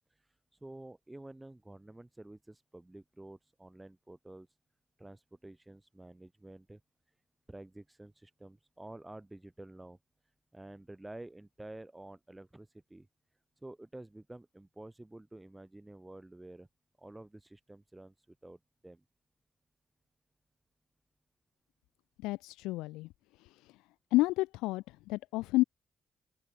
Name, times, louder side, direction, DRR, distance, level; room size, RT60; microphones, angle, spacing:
voice 1, 0.1-4.6 5.0-6.8 7.5-10.0 10.5-13.1 13.6-16.7 17.0-19.0, right 1 dB, 15° right, 3.8 m, -50 dB
voice 2, 22.2-23.1 24.1-24.8 25.1-25.6, left 20 dB, 90° left, 0.3 m, -29 dB
open air
supercardioid pair, 50°, 0 cm